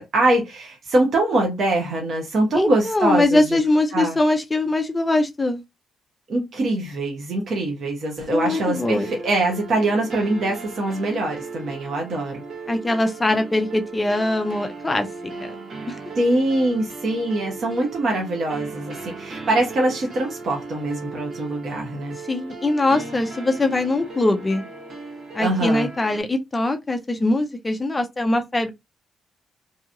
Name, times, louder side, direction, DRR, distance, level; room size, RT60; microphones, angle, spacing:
voice 1, 0.0-3.6 3.9-4.2 6.3-12.4 16.2-22.2 25.4-25.9, right 2 dB, 45° right, 0.9 m, -23 dB
voice 2, 2.5-5.6 8.3-9.1 12.7-15.1 15.4-15.5 15.9-16.0 22.3-24.6 25.3-28.7, left 2 dB, 15° left, 0.4 m, -22 dB
sound 1, 8.4-26.2, right 4 dB, 70° right, 1.2 m, -37 dB
2.9 x 2.7 x 2.5 m
cardioid pair, 175°, 0 cm